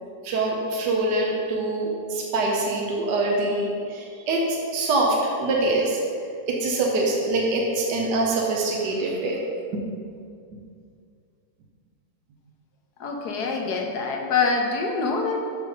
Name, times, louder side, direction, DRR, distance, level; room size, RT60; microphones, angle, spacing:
voice 1, 0.2-6.0 6.5-9.4 9.7-9.8, right 2 dB, 75° right, -1 dB, 1.5 m, -24 dB
voice 2, 13.0-15.4, left 4 dB, 65° left, 2 dB, 1.4 m, -25 dB
6.5 x 5.3 x 5.0 m, 2.3 s
omnidirectional pair, 1.9 m